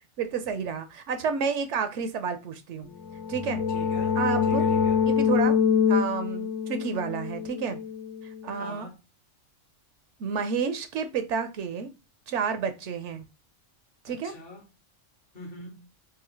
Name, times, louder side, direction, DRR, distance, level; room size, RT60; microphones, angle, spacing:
voice 1, 0.2-2.9 3.3-3.6 4.2-4.6 5.0-5.6 5.9-7.8 8.2-8.9 10.2-11.9 12.3-13.3 14.0-14.3, right 6 dB, 75° right, 0.9 m, -30 dB
sound 1, 3.0-8.5, left 6 dB, 85° left, 1.1 m, -25 dB
voice 2, 3.7-5.0 8.5-9.0 14.1-14.6 15.3-15.9, left 1 dB, 50° left, 1.0 m, -44 dB
3.8 x 2.8 x 3.1 m
omnidirectional pair, 1.3 m